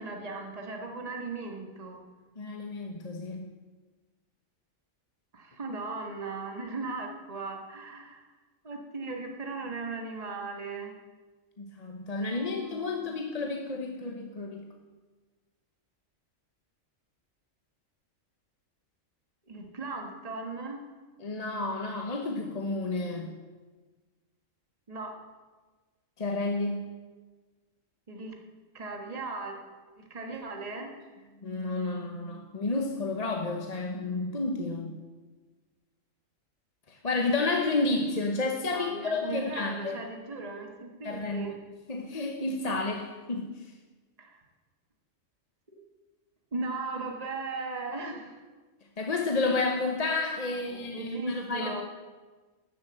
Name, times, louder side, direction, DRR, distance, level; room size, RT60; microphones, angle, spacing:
voice 1, 0.0-2.0 5.3-8.2 8.6-11.0 12.2-13.2 19.5-20.8 24.9-25.1 28.1-28.4 28.7-29.6 30.0-30.9 38.7-41.5 44.2-44.4 45.7-45.8 46.5-48.3 50.7-51.8, right 3 dB, 30° right, 3 dB, 1.6 m, -37 dB
voice 2, 2.4-3.4 11.6-14.7 21.2-23.3 26.2-26.8 31.4-34.9 36.9-40.0 41.0-41.5 41.9-43.5 49.0-51.8, left 3 dB, 35° left, 3 dB, 0.9 m, -31 dB
13.0 x 7.4 x 8.0 m, 1.3 s
omnidirectional pair, 1.4 m